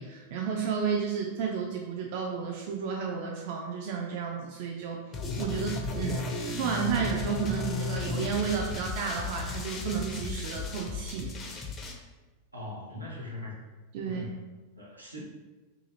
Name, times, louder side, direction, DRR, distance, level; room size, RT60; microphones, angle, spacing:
voice 1, 0.0-5.0 5.4-6.3 6.6-11.3 13.9-14.3, right 6 dB, 50° right, 0 dB, 0.3 m, -32 dB
sound 1, 5.1-11.9, left 3 dB, 25° left, 0.4 m, -34 dB
voice 2, 12.5-13.6 14.0-14.4 14.8-15.2, left 2 dB, 80° right, -4 dB, 0.7 m, -40 dB
2.7 x 2.6 x 2.6 m, 1.2 s
figure-of-eight pair, 90°, 0 cm